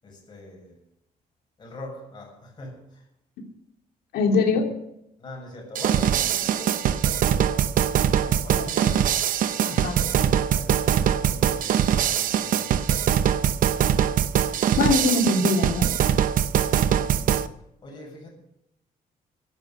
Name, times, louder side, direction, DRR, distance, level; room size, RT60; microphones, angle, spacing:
voice 1, 0.0-0.8 1.6-3.1 5.2-7.8 8.1-9.1 9.5-13.2 16.7-17.4 17.8-18.3, left 1 dB, 30° left, 7.3 m, -42 dB
voice 2, 4.1-4.7 8.5-8.9 9.6-10.0 14.8-15.9, left 3 dB, 90° left, 3.0 m, -23 dB
sound 1, 5.8-17.5, right 9 dB, 60° right, 0.7 m, -22 dB
16.0 x 11.5 x 6.4 m
cardioid pair, 165°, 16 cm